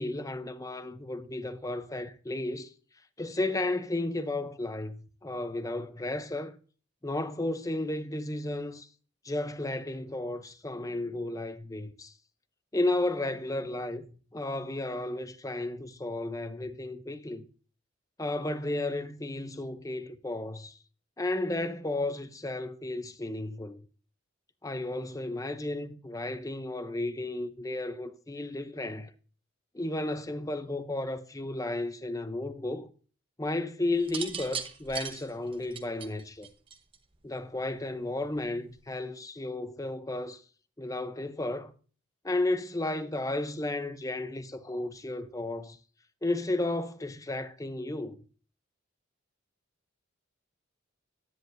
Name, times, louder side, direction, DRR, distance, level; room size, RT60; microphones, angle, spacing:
voice 1, 0.0-2.7 3.2-6.6 7.0-8.9 9.2-12.1 12.7-14.1 14.3-17.5 18.2-20.8 21.2-23.8 24.6-29.1 29.7-32.9 33.4-36.5 37.2-40.4 40.8-41.7 42.2-45.8 46.2-48.2, left 2 dB, 15° left, 0.6 m, -33 dB
sound 1, 34.0-37.2 38.2-38.6, right 7 dB, 25° right, 0.9 m, -38 dB
10.5 x 9.7 x 2.6 m
head